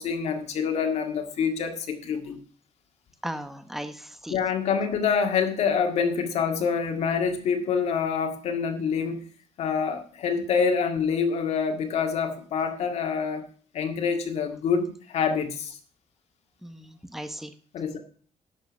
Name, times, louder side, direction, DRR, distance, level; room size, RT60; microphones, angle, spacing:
voice 1, 0.0-2.4 4.3-9.3 9.6-13.4 13.7-15.8 17.7-18.0, left 6 dB, 70° left, 4 dB, 1.9 m, -26 dB
voice 2, 3.2-4.4 16.6-17.5, equal, ahead, 9 dB, 0.9 m, -37 dB
11.5 x 6.6 x 6.2 m, 0.43 s
cardioid pair, 165°, 12 cm